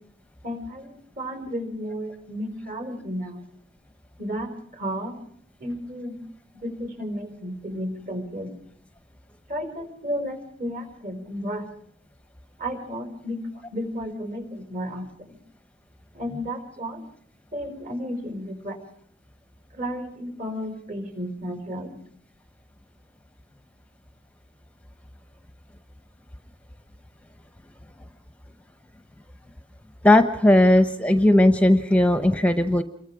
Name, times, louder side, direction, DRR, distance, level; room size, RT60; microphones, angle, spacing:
voice 1, 0.4-3.4 4.2-5.2 5.6-6.2 6.5-8.5 9.5-11.6 12.6-15.4 16.1-17.0 17.5-18.8 19.8-22.0, equal, 45° right, 5 dB, 5.3 m, -33 dB
voice 2, 30.0-32.8, left 1 dB, 5° left, 9 dB, 0.9 m, -17 dB
28.5 x 23.0 x 5.0 m, 0.64 s
head